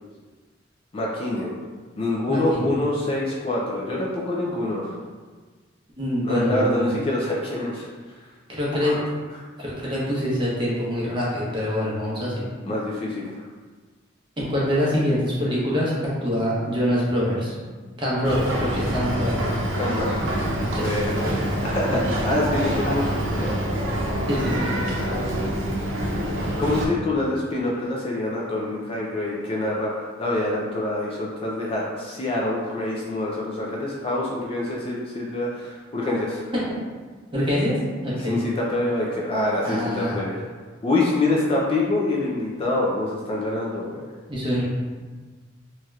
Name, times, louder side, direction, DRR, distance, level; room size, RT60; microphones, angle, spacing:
voice 1, 0.9-1.5 2.0-4.9 6.2-7.9 8.8-9.0 12.6-13.2 19.8-20.4 20.8-21.3 21.7-23.5 25.0-25.9 26.6-36.5 38.3-40.5 40.8-44.1, left 2 dB, 30° left, -4 dB, 0.4 m, -26 dB
voice 2, 2.3-2.7 6.0-6.9 8.5-9.0 9.6-12.4 14.4-17.5 18.0-19.3 20.7-20.8 21.9-22.1 24.3-24.7 36.7-36.8 37.3-38.4 39.6-40.2 44.3-44.6, equal, 25° right, -7 dB, 0.8 m, -25 dB
Boat Water vehicle, 18.2-26.9, right 1 dB, 80° right, 0.6 m, -26 dB
3.1 x 2.8 x 2.3 m, 1.4 s
head